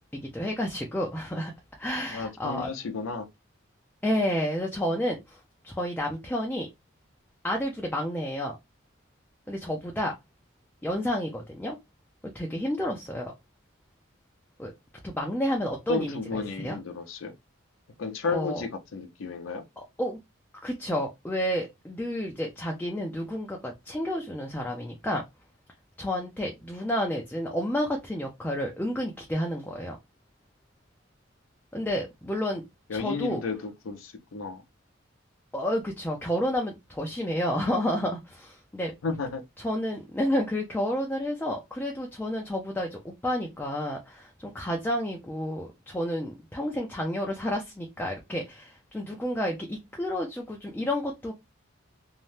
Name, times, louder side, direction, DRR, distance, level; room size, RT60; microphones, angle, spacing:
voice 1, 0.1-1.5 1.8-2.7 4.0-5.4 5.6-6.7 7.4-8.6 9.5-10.1 10.8-11.8 12.3-13.3 14.6-14.7 15.0-16.8 18.3-18.6 20.0-20.2 20.6-25.2 26.0-30.0 31.7-32.6 32.9-33.4 35.5-38.9 39.6-51.3, equal, 10° left, 0.4 m, -30 dB
voice 2, 2.1-3.3 15.9-17.3 18.0-19.6 32.9-34.6 39.0-39.4, left 4 dB, 80° left, 0.5 m, -32 dB
2.6 x 2.1 x 3.2 m
head